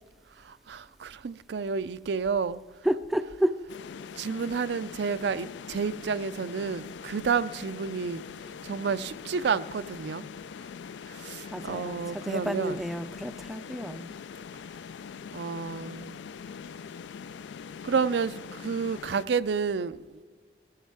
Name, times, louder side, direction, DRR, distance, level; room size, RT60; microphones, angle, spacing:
voice 1, 0.4-2.6 4.1-8.2 8.6-10.2 11.1-12.8 15.3-16.2 17.8-20.2, right 5 dB, 70° right, 0.4 m, -30 dB
voice 2, 2.8-3.6 11.5-14.2, equal, ahead, 0.3 m, -30 dB
sound 1, 3.7-19.3, left 6 dB, 80° left, 0.4 m, -43 dB
17.5 x 14.5 x 4.7 m
head